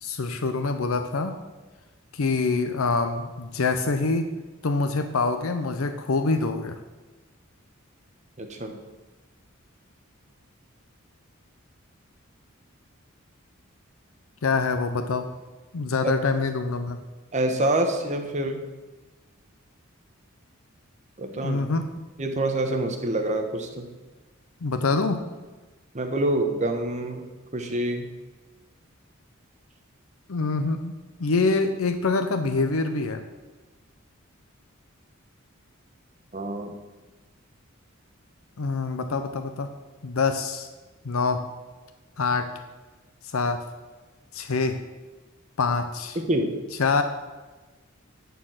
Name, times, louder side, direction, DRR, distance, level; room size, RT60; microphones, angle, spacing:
voice 1, 0.0-1.4 2.1-4.3 4.6-6.8 14.4-15.3 15.7-17.0 21.4-21.9 24.6-25.2 30.3-33.2 38.6-39.7 40.0-40.7 41.0-41.5 42.2-42.5 43.3-43.6 44.3-44.8 45.6-46.2 46.8-47.0, left 4 dB, 80° left, 8 dB, 0.6 m, -25 dB
voice 2, 8.4-8.8 16.0-16.1 17.3-18.6 21.2-21.6 22.2-23.9 25.9-27.2 27.5-28.1 36.3-36.7 46.1-46.5, right 1 dB, 35° right, 4 dB, 1.1 m, -26 dB
11.0 x 4.6 x 6.3 m, 1.2 s
head